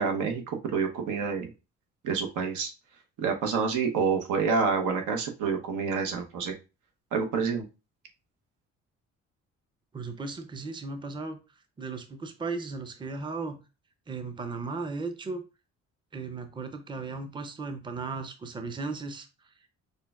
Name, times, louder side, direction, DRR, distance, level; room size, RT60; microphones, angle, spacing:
voice 1, 0.0-1.5 2.0-2.7 3.2-6.5 7.1-7.6, right 5 dB, 80° right, 4 dB, 0.9 m, -28 dB
voice 2, 9.9-11.4 11.8-13.6 14.1-15.4 16.1-19.3, right 4 dB, 15° right, 7 dB, 0.5 m, -36 dB
6.5 x 2.2 x 2.3 m, 0.30 s
cardioid pair, 90°, 30 cm